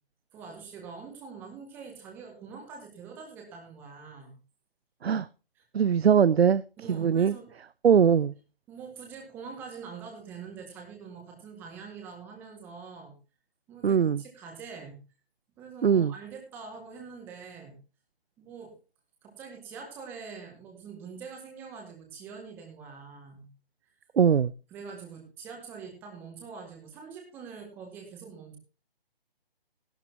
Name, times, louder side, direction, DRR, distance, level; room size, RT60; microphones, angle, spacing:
voice 1, 0.3-4.4 5.6-5.7 6.8-7.5 8.1-8.2 8.7-13.1 13.7-15.0 15.6-17.8 18.4-18.7 19.2-23.5 24.7-28.6, right 5 dB, 5° right, 1.8 m, -44 dB
voice 2, 5.7-6.6 6.9-7.3 7.8-8.3 13.8-14.2 15.8-16.1 24.2-24.5, right 7 dB, 90° right, 0.6 m, -21 dB
15.5 x 12.0 x 2.9 m
hypercardioid pair, 170°, 30 cm